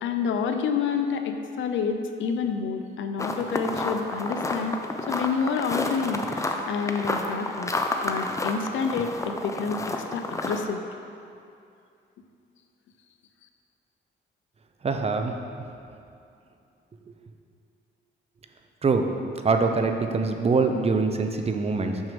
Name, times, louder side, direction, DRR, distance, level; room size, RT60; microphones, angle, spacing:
voice 1, 0.0-4.8 5.1-7.7 8.0-10.8, left 5 dB, 75° left, 7 dB, 0.6 m, -28 dB
sound 1, 3.2-10.6, left 2 dB, 15° left, 0.6 m, -30 dB
voice 2, 14.8-15.4 18.8-19.1 19.4-22.0, right 4 dB, 30° right, 5 dB, 0.7 m, -24 dB
6.3 x 6.2 x 5.2 m, 2.5 s
cardioid pair, 90°, 20 cm